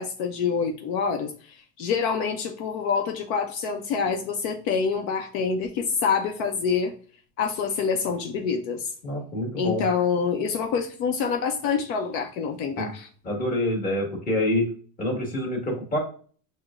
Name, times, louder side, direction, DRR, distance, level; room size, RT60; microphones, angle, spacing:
voice 1, 0.0-1.3 1.8-6.9 7.4-8.9 9.5-13.1, left 6 dB, 75° left, 0.7 m, -26 dB
voice 2, 9.0-9.8 12.8-12.9 13.2-14.7 15.0-16.0, left 1 dB, 20° left, 1.5 m, -26 dB
6.3 x 2.2 x 2.4 m
cardioid pair, 150°, 44 cm